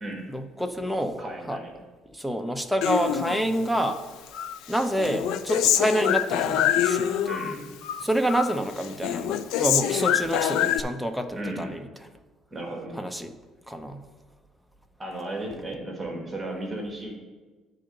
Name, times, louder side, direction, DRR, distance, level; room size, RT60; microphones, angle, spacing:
voice 1, 0.3-1.2 1.5-1.6 2.1-4.0 4.7-7.1 8.0-11.9 12.9-13.3 13.7-14.0, right 1 dB, ahead, 6 dB, 0.6 m, -27 dB
voice 2, 1.2-1.7 7.3-7.7 11.3-11.7 12.5-13.0 15.0-17.2, right 1 dB, 20° right, 0 dB, 1.4 m, -35 dB
Human voice, 2.8-4.0 4.3-7.5 7.8-8.6 8.8-10.8, left 10 dB, 80° left, 0.4 m, -25 dB
9.9 x 3.9 x 6.4 m, 1.3 s
cardioid pair, 145°, 0 cm